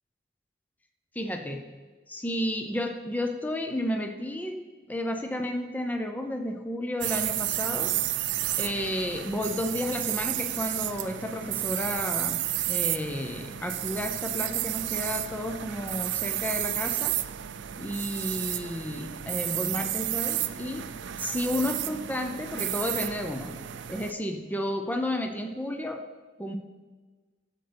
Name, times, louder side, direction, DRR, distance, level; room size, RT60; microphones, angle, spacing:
voice 1, 1.1-1.7 2.1-7.9 8.6-17.2 17.8-20.9 21.2-23.6 23.9-26.0 26.4-26.6, left 1 dB, 10° left, 5 dB, 0.6 m, -32 dB
sound 1, 7.0-24.1, right 13 dB, 80° right, 0.4 m, -32 dB
14.0 x 8.0 x 3.4 m, 1.4 s
head